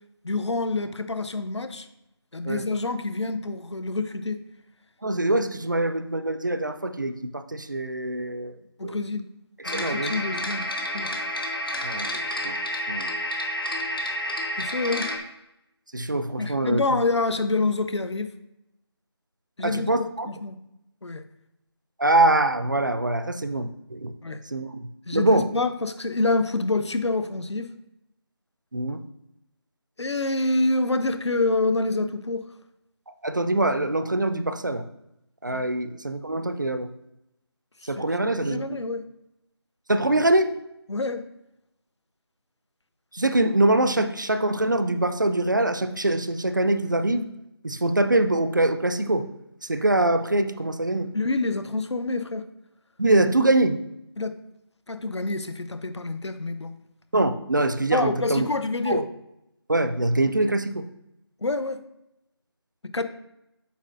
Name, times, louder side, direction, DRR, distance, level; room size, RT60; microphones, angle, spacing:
voice 1, 0.2-1.9 2.3-4.4 8.8-9.3 9.7-10.7 10.9-11.1 14.6-15.1 16.4-18.3 19.6-19.9 20.3-20.6 21.0-21.2 24.2-24.4 25.1-27.7 30.0-32.4 35.5-35.6 37.8-39.0 40.9-41.2 51.1-52.4 54.2-54.3 54.9-56.7 57.9-59.0 61.4-61.8 62.8-63.0, left 2 dB, 85° left, 10 dB, 0.8 m, -27 dB
voice 2, 5.0-8.6 8.8-9.0 9.6-10.2 11.8-12.1 12.4-12.6 12.9-13.1 15.9-17.0 19.6-20.3 22.0-24.1 24.5-24.9 25.1-25.5 28.7-29.0 33.2-34.8 35.4-36.9 37.8-38.6 39.9-40.5 43.1-47.3 47.6-49.3 49.6-51.1 53.0-53.8 57.1-58.5 58.9-59.0 59.7-60.9, right 2 dB, 45° right, 9 dB, 0.4 m, -24 dB
sound 1, 9.6-15.2, equal, 55° left, 1.2 m, -30 dB
8.1 x 5.4 x 2.6 m, 0.86 s
figure-of-eight pair, 175°, 14 cm